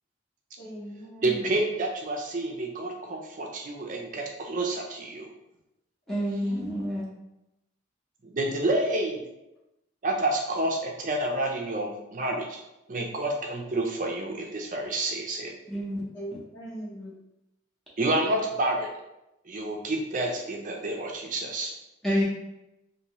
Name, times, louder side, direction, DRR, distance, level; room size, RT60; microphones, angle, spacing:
voice 1, 0.6-1.5 6.1-6.6 16.1-17.1, right 1 dB, 65° left, -8 dB, 1.1 m, -39 dB
voice 2, 1.2-5.3 8.3-9.2 10.0-12.6 12.9-15.5 18.0-18.9 19.5-21.7, right 2 dB, 40° right, 1 dB, 0.5 m, -29 dB
voice 3, 6.1-7.1 15.7-16.0 16.3-16.4 22.0-22.2, equal, ahead, -7 dB, 0.7 m, -28 dB
2.7 x 2.6 x 3.0 m, 0.91 s
head